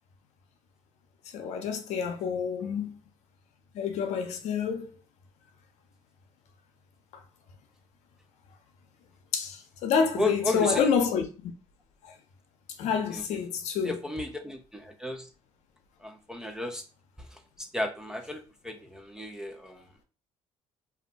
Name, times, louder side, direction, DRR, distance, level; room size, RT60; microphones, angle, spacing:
voice 1, 1.3-2.9 3.7-4.9 9.3-11.5 12.8-14.0, left 6 dB, 70° left, 0.7 m, -28 dB
voice 2, 10.1-10.9 13.1-13.2 13.8-15.3 16.0-16.8 17.2-17.4 17.7-19.8, left 1 dB, 5° right, 0.4 m, -33 dB
2.6 x 2.2 x 3.9 m
cardioid pair, 115°, 12 cm